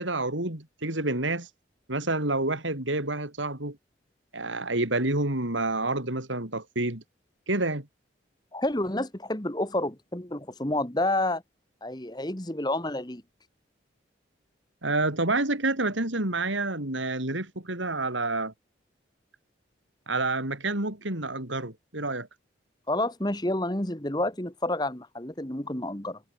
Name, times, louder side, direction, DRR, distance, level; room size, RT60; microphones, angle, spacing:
voice 1, 0.0-1.5 1.9-3.8 4.3-7.0 7.5-7.9 14.8-18.5 20.1-22.3, right 2 dB, 80° right, 4.7 m, -28 dB
voice 2, 8.5-11.4 11.8-13.2 22.9-26.2, left 1 dB, 20° left, 1.7 m, -29 dB
head